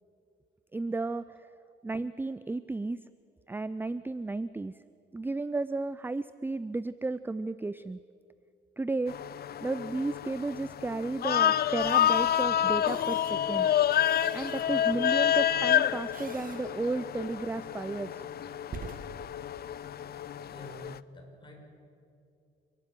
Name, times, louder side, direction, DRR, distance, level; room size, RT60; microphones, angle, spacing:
voice 1, 0.7-1.5 1.8-3.0 3.5-4.7 5.1-8.0 8.8-9.1 9.6-13.7 14.3-18.2, right 3 dB, 10° right, 16 dB, 0.4 m, -33 dB
sound 1, 9.1-21.0, left 10 dB, 50° left, 0.5 m, -28 dB
sound 2, 11.8-20.9, right 5 dB, 45° right, 1.8 m, -49 dB
voice 2, 20.4-21.5, equal, 25° left, 0 dB, 6.5 m, -48 dB
28.0 x 12.5 x 9.2 m, 2.5 s
cardioid pair, 90°, 20 cm